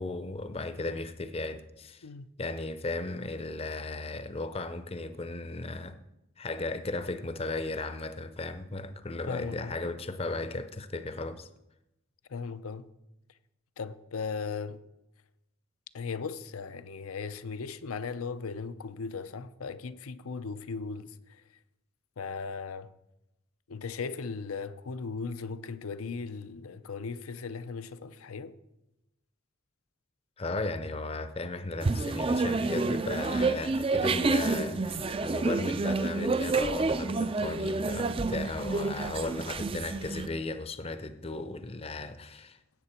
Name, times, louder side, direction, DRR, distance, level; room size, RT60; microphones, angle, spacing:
voice 1, 0.0-2.1 2.4-6.0 6.4-11.5 30.4-42.6, left 2 dB, 30° left, 0.6 m, -36 dB
voice 2, 9.3-9.8 12.3-12.9 13.8-14.8 15.9-21.4 22.2-22.9 23.7-28.5, left 5 dB, 85° left, 0.6 m, -37 dB
sound 1, 31.8-40.3, right 3 dB, 25° right, 0.4 m, -29 dB
16.5 x 7.9 x 4.4 m
head